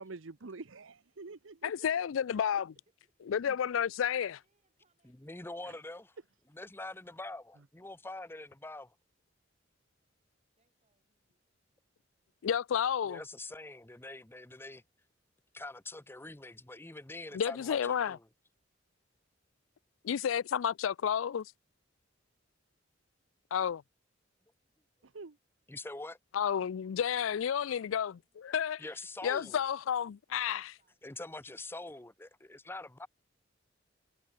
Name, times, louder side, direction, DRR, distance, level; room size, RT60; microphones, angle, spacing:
voice 1, 0.0-2.0 5.6-5.8 25.0-25.4, right 3 dB, 80° right, 0.9 m, -47 dB
voice 2, 1.6-2.7 3.3-4.4 12.4-13.2 17.3-18.2 20.0-21.5 23.5-23.8 26.3-28.1 28.5-28.8 29.2-30.7, left 8 dB, 90° left, 0.4 m, -31 dB
voice 3, 2.7-3.3 4.0-5.7 10.6-11.4 26.6-27.7 28.1-28.7 29.2-31.4, right 3 dB, 35° right, 7.5 m, -77 dB
voice 4, 5.0-6.1 6.5-8.9 13.0-14.8 15.5-18.2 25.7-26.2 28.8-29.6 31.0-33.1, left 2 dB, 10° left, 0.8 m, -44 dB
head